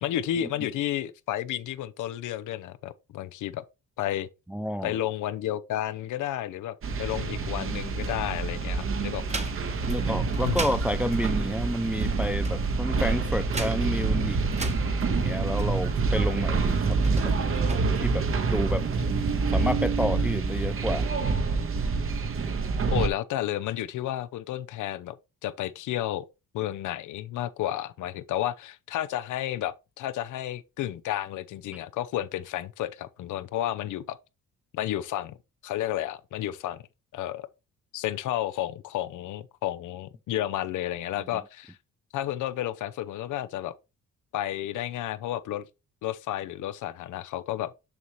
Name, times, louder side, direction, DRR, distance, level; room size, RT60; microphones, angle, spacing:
voice 1, 0.0-3.6 4.0-4.3 4.8-9.4 10.4-10.6 19.0-19.1 22.9-25.2 25.4-26.3 26.5-34.2 34.7-35.4 35.6-36.8 37.1-37.5 37.9-41.8 42.1-43.7 44.3-45.6 46.0-47.7, left 12 dB, 80° left, 0.7 m, -31 dB
voice 2, 4.5-4.9 9.9-14.4 15.0-17.0 17.2-17.3 18.0-18.8 19.5-21.1 41.3-41.4, equal, 5° right, 0.3 m, -30 dB
sound 1, 6.8-23.1, right 4 dB, 45° right, 1.0 m, -27 dB
sound 2, 7.8-8.7 9.1-16.1 16.9-17.8, right 3 dB, 20° right, 1.1 m, -39 dB
6.8 x 5.6 x 3.0 m
cardioid pair, 90°, 30 cm